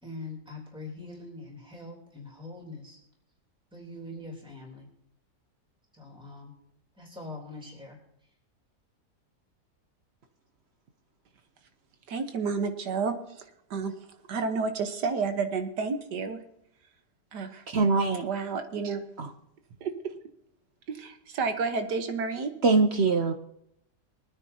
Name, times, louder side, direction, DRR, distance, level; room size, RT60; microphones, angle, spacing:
voice 1, 0.0-3.0 3.7-4.9 6.0-6.5 7.0-8.0, left 2 dB, 5° right, -2 dB, 3.4 m, -43 dB
voice 2, 12.1-13.9 14.3-16.4 17.3-17.6 18.2-19.1 19.8-20.1 20.9-22.5, right 4 dB, 85° right, 7 dB, 1.8 m, -31 dB
voice 3, 17.7-18.3 19.2-19.3 22.6-23.3, right 4 dB, 55° right, 7 dB, 0.8 m, -23 dB
23.5 x 9.7 x 2.8 m, 0.78 s
omnidirectional pair, 1.7 m